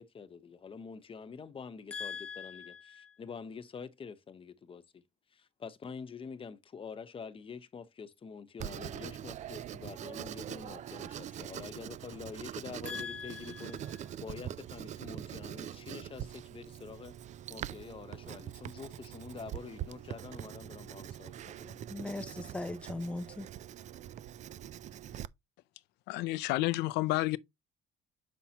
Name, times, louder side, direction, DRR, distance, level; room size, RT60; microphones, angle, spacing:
voice 1, 0.0-5.0 5.3-13.8 14.2-17.2 17.5-21.8, left 5 dB, 30° left, 0.9 m, -46 dB
voice 2, 1.9-3.2 12.9-14.0 21.9-23.5, left 3 dB, 5° left, 0.5 m, -40 dB
Writing, 8.6-25.3, right 11 dB, 45° right, 0.4 m, -43 dB
voice 3, 26.1-27.4, left 19 dB, 90° left, 0.4 m, -30 dB
7.2 x 5.7 x 2.8 m
cardioid pair, 110°, 17 cm